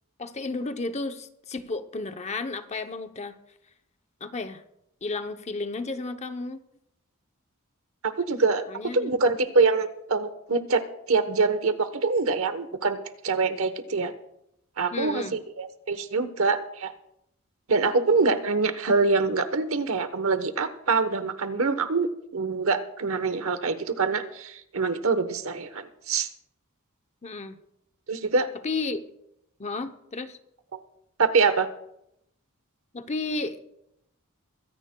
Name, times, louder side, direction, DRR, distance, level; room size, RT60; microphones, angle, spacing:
voice 1, 0.2-3.4 4.2-4.6 5.0-6.6 8.7-9.2 14.9-15.4 27.2-27.6 28.6-29.1 29.6-30.4 32.9-33.6, left 3 dB, 30° left, 8 dB, 0.7 m, -32 dB
voice 2, 8.0-8.6 8.9-13.0 13.2-14.1 14.8-16.9 17.7-26.3 28.1-28.5 31.2-31.7, right 4 dB, 70° right, 11 dB, 1.1 m, -25 dB
23.5 x 16.0 x 2.3 m, 0.79 s
head